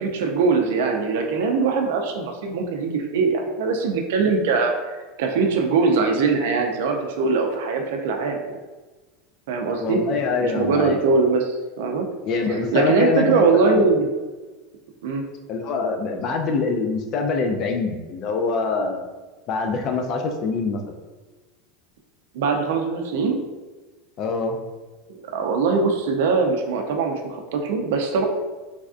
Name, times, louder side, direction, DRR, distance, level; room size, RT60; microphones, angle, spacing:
voice 1, 0.0-8.6 9.5-10.0 10.4-12.1 12.5-14.0 15.0-15.3 22.3-23.4 25.3-28.3, right 4 dB, 75° right, 3 dB, 0.4 m, -22 dB
voice 2, 9.8-11.0 12.3-14.0 15.5-19.1 19.5-20.8 24.2-24.6, left 4 dB, 40° left, 4 dB, 0.3 m, -24 dB
3.3 x 2.4 x 2.4 m, 1.2 s
supercardioid pair, 155°, 0 cm